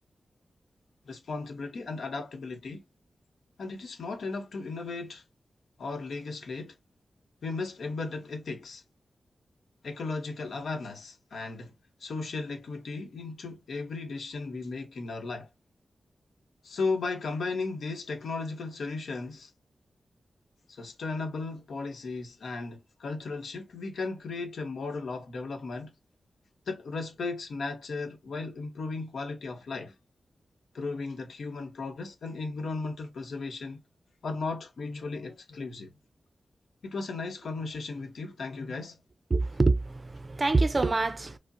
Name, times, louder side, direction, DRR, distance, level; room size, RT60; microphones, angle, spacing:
voice 1, 1.1-2.8 3.6-5.2 5.8-6.7 7.4-8.8 9.8-11.7 12.0-15.5 16.6-19.5 20.7-25.9 26.7-29.9 30.7-33.8 34.2-35.9 36.8-39.0, left 3 dB, 90° left, 0.9 m, -35 dB
voice 2, 39.3-41.4, right 3 dB, 30° right, 0.5 m, -25 dB
4.9 x 2.0 x 2.7 m
wide cardioid pair, 140°, 0 cm